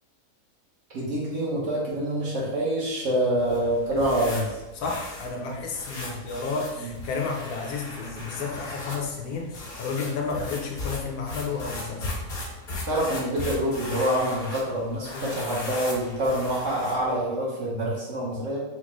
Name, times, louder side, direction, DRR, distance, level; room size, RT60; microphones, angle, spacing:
voice 1, 0.9-4.5 6.0-6.1 6.8-6.9 12.9-18.6, right 1 dB, 60° right, -6 dB, 1.2 m, -26 dB
sound 1, 3.4-17.1, left 2 dB, 45° left, 0.7 m, -37 dB
voice 2, 4.7-12.1 15.1-15.3, left 4 dB, 80° left, 1 dB, 1.2 m, -31 dB
4.8 x 2.1 x 3.0 m, 1.1 s
omnidirectional pair, 1.6 m